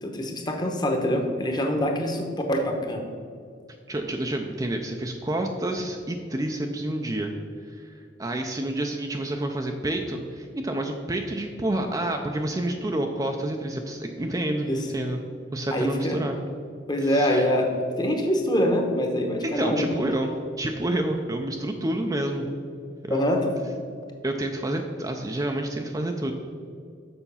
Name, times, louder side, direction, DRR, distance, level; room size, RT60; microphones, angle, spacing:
voice 1, 0.0-3.0 14.7-14.8 15.7-16.2 16.9-17.7 18.0-19.9 23.1-23.5, equal, 20° left, 3 dB, 0.9 m, -24 dB
voice 2, 3.9-7.3 7.6-7.9 8.2-15.2 15.5-16.3 17.0-17.5 19.4-20.3 20.6-22.5 23.0-23.4 24.2-26.3, right 1 dB, 20° right, 3 dB, 0.4 m, -29 dB
7.0 x 5.8 x 5.5 m, 2.3 s
head